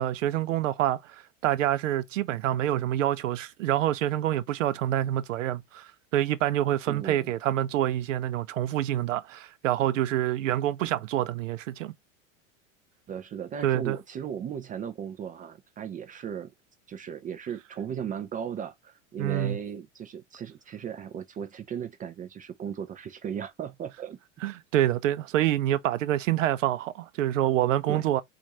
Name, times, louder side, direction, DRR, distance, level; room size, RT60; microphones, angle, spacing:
voice 1, 0.0-11.9 13.6-14.0 19.2-19.6 24.4-28.2, right 12 dB, 85° right, 0.6 m, -27 dB
voice 2, 6.9-7.3 13.1-16.5 16.9-24.2 27.9-28.1, right 8 dB, 25° right, 0.4 m, -36 dB
4.4 x 2.5 x 2.7 m
hypercardioid pair, 95°, 37 cm